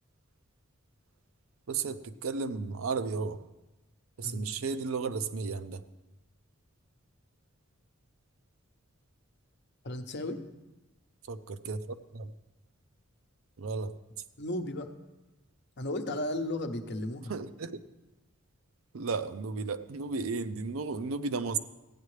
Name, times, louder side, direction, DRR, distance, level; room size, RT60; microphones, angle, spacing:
voice 1, 1.7-3.4 4.2-5.8 11.3-12.3 13.6-13.9 17.3-17.8 18.9-21.6, right 4 dB, 75° right, 10 dB, 0.5 m, -34 dB
voice 2, 9.8-10.4 14.4-14.9 15.8-17.3, left 1 dB, 55° left, 6 dB, 0.8 m, -34 dB
15.5 x 9.4 x 3.2 m, 1.0 s
head